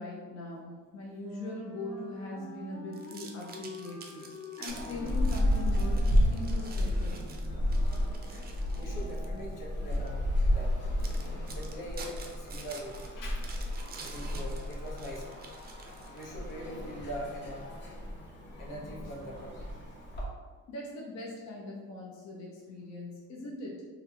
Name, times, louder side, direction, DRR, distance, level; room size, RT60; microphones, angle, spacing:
voice 1, 0.0-4.3 4.6-7.2 20.7-23.8, left 2 dB, 60° left, -3 dB, 0.7 m, -41 dB
Wind instrument woodwind instrument, 1.1-7.1, left 1 dB, ahead, 0.8 m, -47 dB
sound 1, 2.9-9.4 9.9-10.1 10.6-10.7 11.0-16.5, right 4 dB, 30° right, 0.4 m, -48 dB
sound 2, 4.7-20.2, left 1 dB, 35° left, 0.9 m, -32 dB
voice 2, 8.7-10.2 10.5-10.8 11.5-13.5 13.9-15.2 16.1-17.6 18.6-19.6, equal, 85° left, -3 dB, 0.9 m, -42 dB
3.3 x 2.3 x 3.2 m, 1.5 s
cardioid pair, 115°, 31 cm